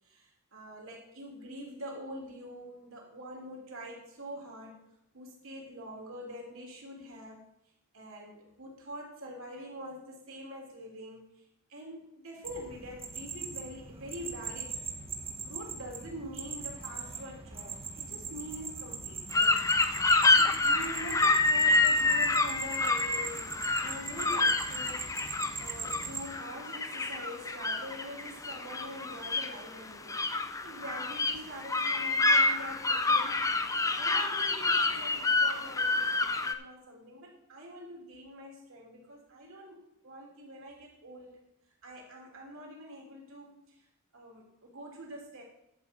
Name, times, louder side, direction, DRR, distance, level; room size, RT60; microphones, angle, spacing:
voice 1, 0.0-4.8 5.1-7.4 7.9-11.3 11.7-14.8 15.4-19.6 20.3-23.5 23.8-25.1 25.6-33.3 34.0-41.4 41.8-43.7 44.1-45.4, equal, 70° right, -1 dB, 3.3 m, -45 dB
sound 1, 12.4-26.2, right 5 dB, 25° right, 1.5 m, -41 dB
sound 2, 19.3-36.5, left 3 dB, 15° left, 0.5 m, -27 dB
11.5 x 5.4 x 6.7 m, 0.79 s
head